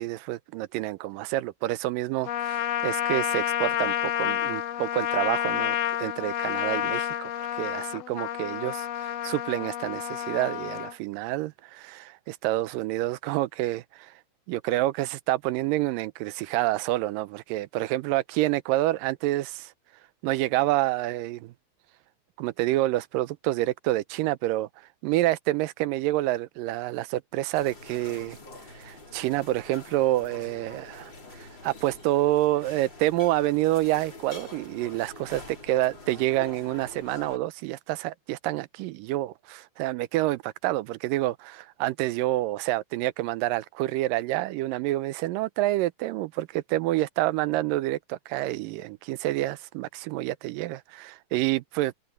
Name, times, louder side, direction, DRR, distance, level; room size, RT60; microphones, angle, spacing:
voice 1, 0.0-14.1 14.5-19.7 20.2-21.5 22.4-24.7 25.0-28.4 28.7-35.4 35.7-51.9, right 16 dB, 80° right, 2.2 m, -28 dB
Trumpet, 2.2-10.9, left 12 dB, 85° left, 1.4 m, -29 dB
sound 1, 27.5-37.4, left 2 dB, 30° left, 5.5 m, -46 dB
open air
omnidirectional pair, 4.0 m